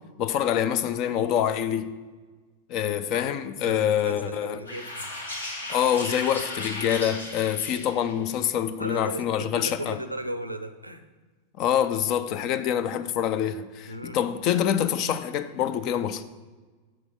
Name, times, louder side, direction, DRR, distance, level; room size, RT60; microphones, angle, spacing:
voice 1, 0.2-1.9 2.7-4.6 5.7-10.0 11.6-16.2, left 9 dB, 40° left, 0.5 m, -26 dB
voice 2, 2.8-3.3 3.6-5.1 8.8-11.1 13.9-14.2, right 1 dB, 85° right, 0.5 m, -36 dB
sound 1, 4.7-8.3, left 2 dB, 75° left, 1.4 m, -36 dB
7.4 x 6.0 x 5.0 m
figure-of-eight pair, 90°, 0 cm